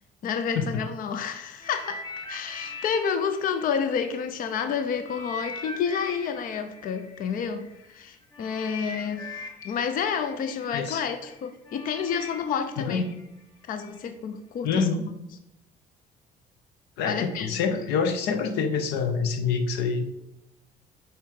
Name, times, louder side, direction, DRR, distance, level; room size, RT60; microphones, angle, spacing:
voice 1, 0.2-9.3 9.6-13.1 13.7-14.8 17.0-17.5, left 6 dB, 55° left, 9 dB, 0.6 m, -29 dB
sound 1, 1.6-4.5 5.0-14.0 14.7-14.8, left 2 dB, 25° left, 1.0 m, -42 dB
voice 2, 10.7-11.0 12.8-13.1 14.6-15.1 17.0-20.0, left 5 dB, 90° left, 8 dB, 0.8 m, -26 dB
5.6 x 4.4 x 4.8 m, 0.89 s
cardioid pair, 110°, 17 cm